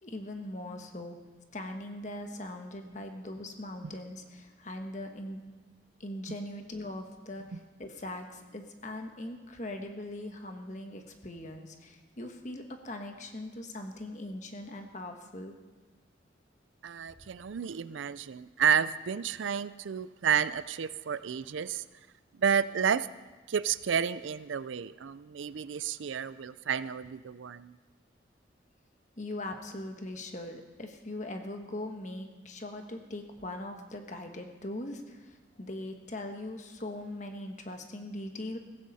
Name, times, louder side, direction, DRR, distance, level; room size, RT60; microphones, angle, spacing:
voice 1, 0.0-1.2 1.5-5.4 6.0-15.5 29.2-38.6, left 1 dB, 40° left, 5 dB, 1.4 m, -40 dB
voice 2, 16.8-21.8 22.4-23.1 23.5-27.8, right 7 dB, 75° right, 16 dB, 0.4 m, -31 dB
16.0 x 15.5 x 4.2 m, 1.3 s
head